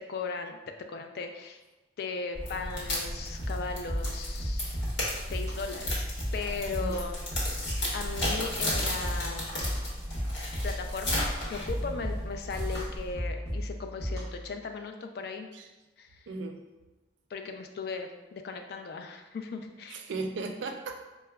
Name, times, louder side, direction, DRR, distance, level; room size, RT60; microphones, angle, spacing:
voice 1, 0.1-0.6 0.9-1.6 2.0-4.8 5.3-6.0 6.3-7.2 7.5-9.6 10.6-15.5 16.0-16.3 17.3-20.0, left 4 dB, 55° left, 5 dB, 0.3 m, -37 dB
sound 1, 2.3-13.1, left 1 dB, 75° left, 1.1 m, -35 dB
sound 2, 3.4-14.5, equal, 35° left, 1.0 m, -35 dB
voice 2, 16.3-16.6 19.9-21.1, right 3 dB, 75° right, 5 dB, 0.4 m, -36 dB
4.6 x 2.1 x 2.3 m, 1.1 s
head